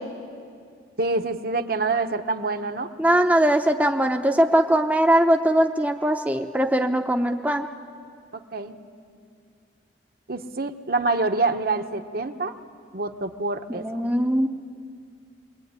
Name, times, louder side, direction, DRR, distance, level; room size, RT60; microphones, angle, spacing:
voice 1, 1.0-2.9 8.3-8.7 10.3-12.5 12.9-13.9, right 3 dB, 55° right, 6 dB, 1.1 m, -26 dB
voice 2, 3.0-7.7 13.7-14.5, right 1 dB, 10° right, 4 dB, 0.7 m, -21 dB
24.0 x 21.0 x 9.5 m, 2.3 s
head